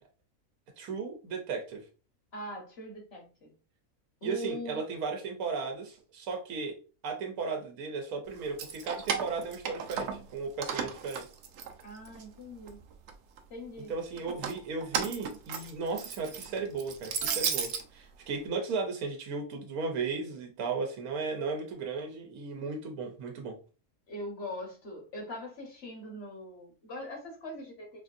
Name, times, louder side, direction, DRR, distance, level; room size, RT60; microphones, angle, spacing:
voice 1, 0.8-1.8 4.2-6.8 7.0-11.2 13.9-23.6, right 4 dB, 90° right, 1.2 m, -35 dB
voice 2, 2.3-3.5 4.2-5.0 11.8-12.8 13.5-13.9 24.1-28.0, left 1 dB, 50° left, 1.2 m, -42 dB
Keys jangling, 8.4-10.3 10.6-12.2 12.6-13.4 14.2-17.8, right 7 dB, 65° right, 0.8 m, -34 dB
4.1 x 2.6 x 2.4 m
omnidirectional pair, 1.5 m